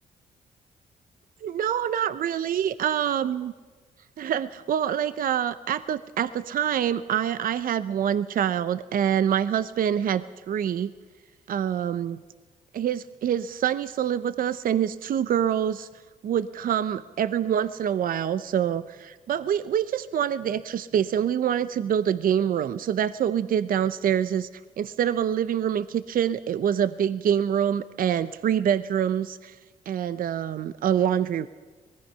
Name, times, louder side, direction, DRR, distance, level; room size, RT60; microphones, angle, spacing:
voice 1, 1.4-3.5 4.2-10.9 11.5-12.2 12.7-15.9 16.2-24.5 24.8-29.6 29.9-31.5, right 9 dB, 65° right, 14 dB, 0.7 m, -25 dB
25.0 x 20.0 x 5.6 m, 1.4 s
cardioid pair, 75°, 16 cm